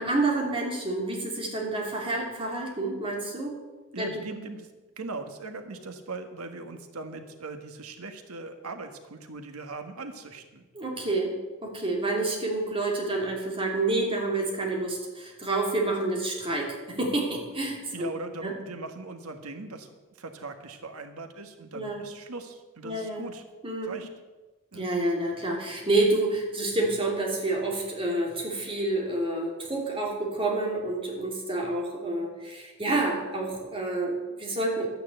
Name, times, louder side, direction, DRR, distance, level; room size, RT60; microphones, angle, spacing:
voice 1, 0.0-3.5 4.0-4.1 10.7-11.4 11.6-18.1 18.4-18.5 21.7-22.0 22.8-23.2 23.6-24.0 24.7-34.9, right 2 dB, 25° right, -1 dB, 3.0 m, -28 dB
voice 2, 3.9-4.7 5.0-10.6 17.9-19.9 20.2-23.4 23.8-24.1 24.7-24.9, right 3 dB, 75° right, 6 dB, 1.4 m, -40 dB
11.5 x 9.4 x 7.9 m, 1.2 s
head